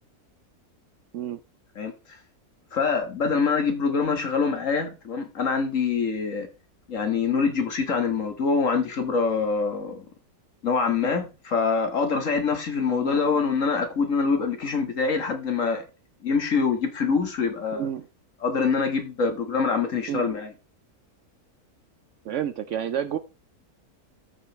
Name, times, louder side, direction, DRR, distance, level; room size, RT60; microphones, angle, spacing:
voice 1, 1.8-2.2 2.7-6.5 6.9-10.1 10.6-15.8 16.2-17.9 18.4-20.5, left 5 dB, 55° left, 1.9 m, -25 dB
voice 2, 17.7-18.1 20.1-20.3 22.2-23.2, right 9 dB, 65° right, 0.8 m, -30 dB
13.0 x 6.4 x 3.1 m
omnidirectional pair, 1.6 m